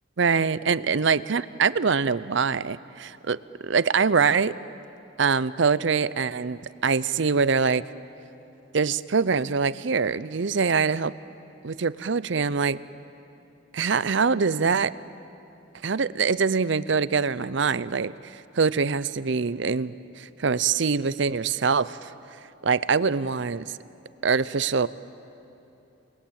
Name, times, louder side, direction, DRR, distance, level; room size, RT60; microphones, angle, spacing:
voice 1, 0.2-3.4 3.6-4.5 5.2-7.8 8.7-11.1 11.6-12.8 13.7-14.9 15.8-18.1 18.5-22.1 22.6-23.7 24.2-24.9, right 5 dB, 60° right, 17 dB, 0.6 m, -24 dB
29.5 x 21.0 x 8.7 m, 3.0 s
head